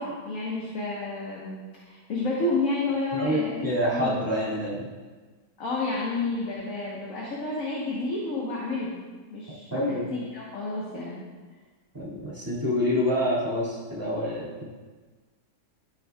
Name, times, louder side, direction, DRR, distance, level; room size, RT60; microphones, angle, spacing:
voice 1, 0.0-4.3 5.6-9.0 9.3-11.2, left 2 dB, 60° left, -5 dB, 1.6 m, -30 dB
voice 2, 3.1-4.9 9.7-10.1 11.9-14.7, left 1 dB, 15° right, -9 dB, 2.2 m, -27 dB
12.5 x 6.4 x 2.3 m, 1.4 s
omnidirectional pair, 1.6 m